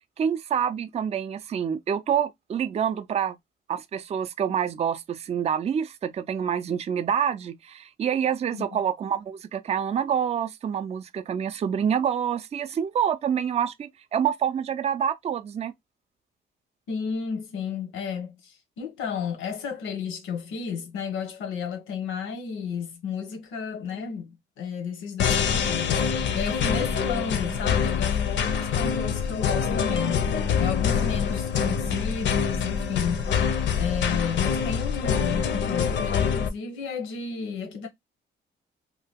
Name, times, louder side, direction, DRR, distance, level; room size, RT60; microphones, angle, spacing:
voice 1, 0.2-3.4 3.7-15.7, right 8 dB, 35° right, 0.4 m, -27 dB
voice 2, 16.9-26.0 26.3-33.3 33.8-37.9, left 6 dB, 90° left, 0.9 m, -32 dB
sound 1, 25.2-36.5, left 7 dB, 65° left, 0.6 m, -25 dB
2.7 x 2.2 x 3.4 m
cardioid pair, 90°, 20 cm